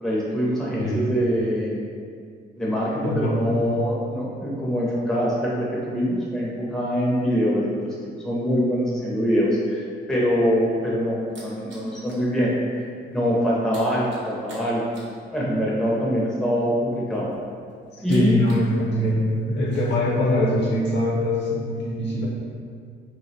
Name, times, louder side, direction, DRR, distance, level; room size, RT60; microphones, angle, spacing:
voice 1, 0.0-1.8 2.6-9.8 10.1-12.8 13.1-14.8 15.3-17.3 18.0-18.4 18.7-18.8, equal, ahead, -6 dB, 0.5 m, -24 dB
voice 2, 3.0-3.8 18.1-22.3, left 1 dB, 60° left, -4 dB, 0.6 m, -23 dB
sound 1, 10.5-12.3 12.6-12.9 13.1-18.7 19.0-19.9, right 4 dB, 70° right, 0.7 m, -46 dB
2.5 x 2.0 x 2.6 m, 2.1 s
cardioid pair, 90°, 20 cm